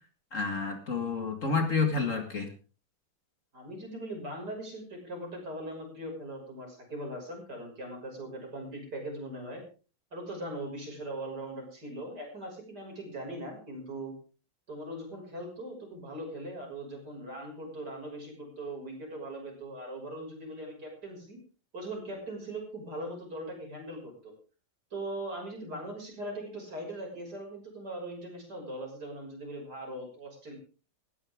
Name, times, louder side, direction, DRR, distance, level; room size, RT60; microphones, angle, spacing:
voice 1, 0.3-2.5, left 4 dB, 40° left, 5 dB, 2.3 m, -29 dB
voice 2, 3.5-9.6 10.1-14.1 14.7-21.4 21.7-24.3 24.9-30.6, right 1 dB, 55° right, 1 dB, 6.7 m, -40 dB
18.0 x 15.0 x 3.7 m, 0.36 s
omnidirectional pair, 2.1 m